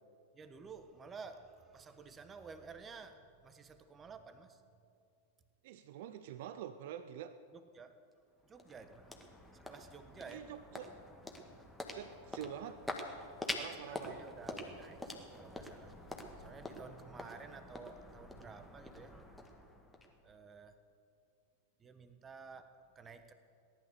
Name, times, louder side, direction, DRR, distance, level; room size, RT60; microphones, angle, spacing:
voice 1, 0.3-4.6 7.5-7.9 8.4-9.1 9.5-10.4 11.5-11.6 13.7-19.2 20.2-20.8 21.8-23.3, right 5 dB, 20° right, 10 dB, 1.2 m, -52 dB
voice 2, 5.6-7.4 10.3-10.9 11.9-12.8 13.6-14.2, right 10 dB, 55° right, 12 dB, 0.6 m, -46 dB
sound 1, 8.1-20.5, left 1 dB, 5° left, 1.7 m, -47 dB
18.5 x 11.5 x 6.8 m, 2.4 s
figure-of-eight pair, 95°, 0 cm